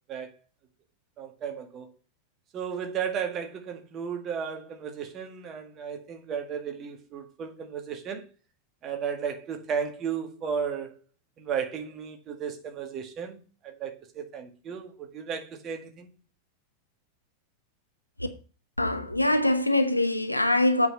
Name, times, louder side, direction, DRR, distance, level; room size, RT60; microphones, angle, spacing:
voice 1, 1.2-1.9 2.5-8.3 8.8-11.0 11.4-16.1, right 7 dB, 30° right, 1.9 m, -34 dB
voice 2, 18.8-20.9, left 1 dB, 85° left, 0.9 m, -23 dB
8.1 x 5.7 x 5.6 m
figure-of-eight pair, 90°, 0 cm